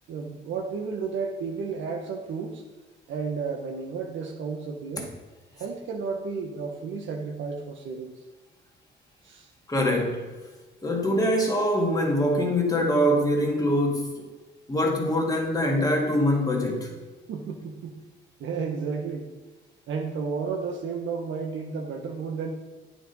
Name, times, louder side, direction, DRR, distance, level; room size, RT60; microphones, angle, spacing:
voice 1, 0.1-2.6 3.1-5.1 5.5-8.2 9.2-9.5 17.3-18.0 18.4-19.3 19.9-22.5, right 5 dB, 70° right, 0.8 m, -32 dB
voice 2, 9.7-10.3 10.8-14.2 14.7-16.9, equal, 20° left, 1.8 m, -24 dB
9.1 x 5.0 x 3.9 m
cardioid pair, 90°, 20 cm